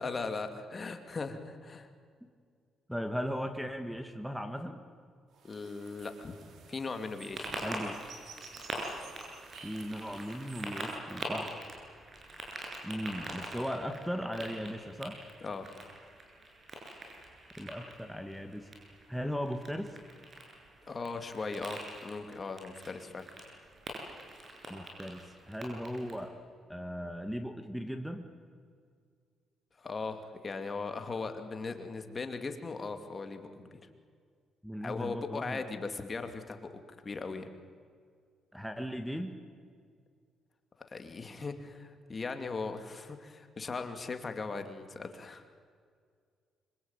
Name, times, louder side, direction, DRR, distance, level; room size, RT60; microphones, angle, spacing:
voice 1, 0.0-1.9 5.4-6.4 6.7-7.7 15.4-15.7 20.9-23.3 29.8-33.7 34.8-36.7 37.0-37.5 40.9-45.5, left 4 dB, 35° left, 7 dB, 2.6 m, -38 dB
voice 2, 2.9-4.8 7.6-8.0 9.6-11.6 12.8-15.2 17.6-18.7 19.1-20.0 24.7-26.4 26.7-28.3 34.6-35.6 38.5-39.3, equal, ahead, 7 dB, 1.8 m, -37 dB
sound 1, 5.3-11.0, right 6 dB, 70° right, 4.1 m, -54 dB
sound 2, 7.2-26.3, right 1 dB, 40° right, 8.0 m, -44 dB
25.5 x 25.0 x 9.0 m, 2.1 s
cardioid pair, 90°, 0 cm